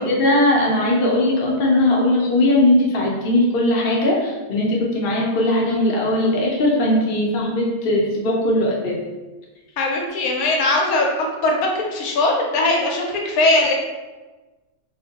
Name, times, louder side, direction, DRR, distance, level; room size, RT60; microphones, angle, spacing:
voice 1, 0.0-9.0, left 1 dB, 50° left, -3 dB, 0.7 m, -19 dB
voice 2, 9.8-13.7, left 2 dB, 80° left, 0 dB, 1.0 m, -20 dB
2.9 x 2.1 x 2.8 m, 1.2 s
omnidirectional pair, 1.5 m